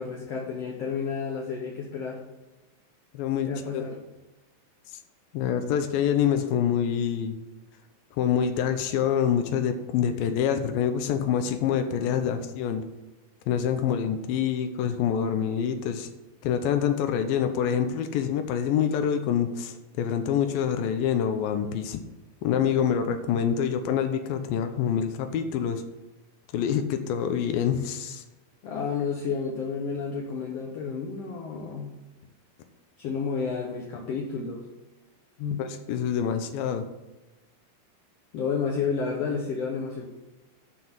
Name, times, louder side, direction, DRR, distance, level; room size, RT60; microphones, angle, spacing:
voice 1, 0.0-2.2 3.5-4.0 28.6-31.9 33.0-34.6 35.4-35.7 38.3-40.1, left 5 dB, 65° left, 0 dB, 1.6 m, -31 dB
voice 2, 3.1-3.8 5.3-7.4 8.2-12.8 13.5-16.1 16.4-22.0 22.4-25.8 26.5-28.2 35.6-36.9, left 8 dB, 90° left, 7 dB, 2.6 m, -26 dB
11.5 x 4.6 x 6.0 m, 1.1 s
omnidirectional pair, 4.0 m